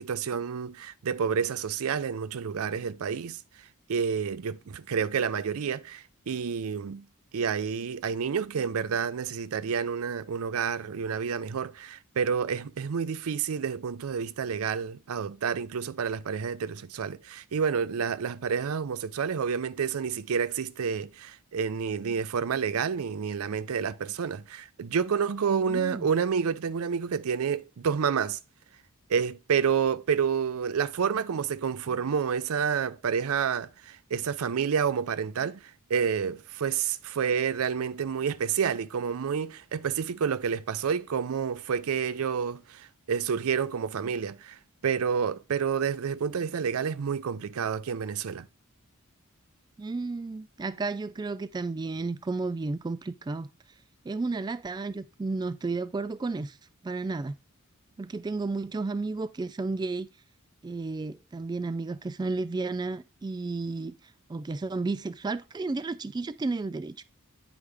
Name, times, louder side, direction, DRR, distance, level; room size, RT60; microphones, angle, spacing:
voice 1, 0.0-3.4 3.9-7.0 7.3-28.4 29.1-44.6 44.8-48.5, right 6 dB, 80° right, 0.5 m, -29 dB
voice 2, 25.7-26.1 49.8-53.5 54.0-56.6 56.8-57.3 58.0-60.1 60.6-63.9 64.3-67.0, right 3 dB, 20° right, 0.3 m, -32 dB
9.8 x 4.8 x 3.4 m
head